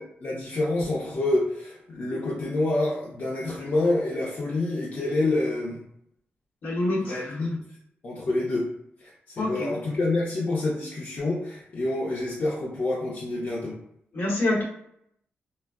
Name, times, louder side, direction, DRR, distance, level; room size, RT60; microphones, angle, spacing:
voice 1, 0.2-5.8 7.0-7.7 8.0-8.7 9.0-13.8, left 2 dB, 45° left, -5 dB, 0.6 m, -27 dB
voice 2, 6.6-7.3 9.4-9.8 14.1-14.6, left 1 dB, 65° left, -4 dB, 1.0 m, -26 dB
3.4 x 2.0 x 2.3 m, 0.73 s
wide cardioid pair, 120°, 4 cm